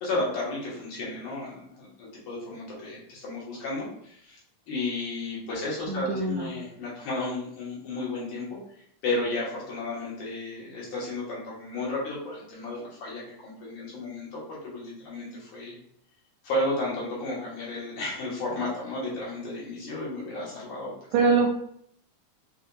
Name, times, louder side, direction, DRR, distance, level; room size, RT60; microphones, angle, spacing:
voice 1, 0.0-4.4 4.7-8.6 9.0-15.8 16.4-20.9, left 2 dB, 70° left, -6 dB, 2.6 m, -33 dB
voice 2, 5.9-6.5 21.1-21.5, right 4 dB, 85° right, 2 dB, 2.1 m, -23 dB
5.6 x 2.5 x 2.5 m, 0.67 s
omnidirectional pair, 3.6 m